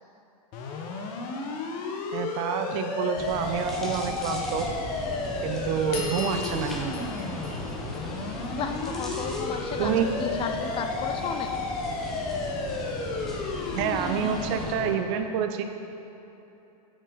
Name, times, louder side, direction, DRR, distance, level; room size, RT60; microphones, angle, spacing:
sound 1, 0.5-14.9, left 4 dB, 45° left, 1.0 m, -33 dB
voice 1, 2.1-4.7 5.4-7.1 9.8-10.1 13.7-15.6, right 8 dB, 50° right, 7 dB, 0.6 m, -28 dB
sound 2, 3.2-14.8, equal, ahead, 0.9 m, -37 dB
sound 3, 5.9-8.5, left 4 dB, 65° left, 1.4 m, -38 dB
voice 2, 8.6-9.9 10.2-11.5, left 6 dB, 25° left, 6 dB, 0.4 m, -33 dB
8.8 x 5.4 x 3.9 m, 3.0 s
hypercardioid pair, 115°, 20 cm